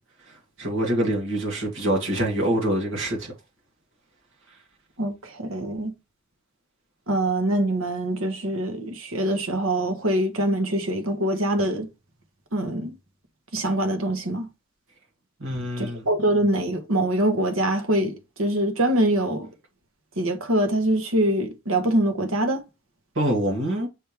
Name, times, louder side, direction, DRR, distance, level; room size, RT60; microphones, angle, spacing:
voice 1, 0.3-3.3 15.4-16.1 23.2-23.9, right 1 dB, 70° right, 2.3 m, -25 dB
voice 2, 5.0-5.9 7.1-11.9 12.5-13.0 13.5-14.5 15.8-19.5 20.2-22.6, right 1 dB, 85° right, 1.3 m, -24 dB
6.4 x 3.5 x 4.5 m
head